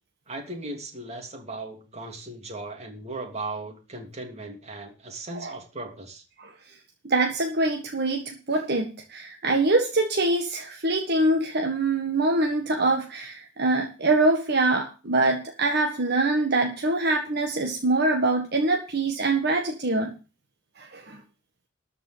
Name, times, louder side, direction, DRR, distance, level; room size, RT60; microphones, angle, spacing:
voice 1, 0.3-6.2, right 2 dB, 35° right, 3 dB, 2.9 m, -37 dB
voice 2, 7.0-20.1 20.8-21.2, right 2 dB, 60° right, 2 dB, 1.6 m, -24 dB
13.0 x 5.4 x 7.9 m, 0.33 s
head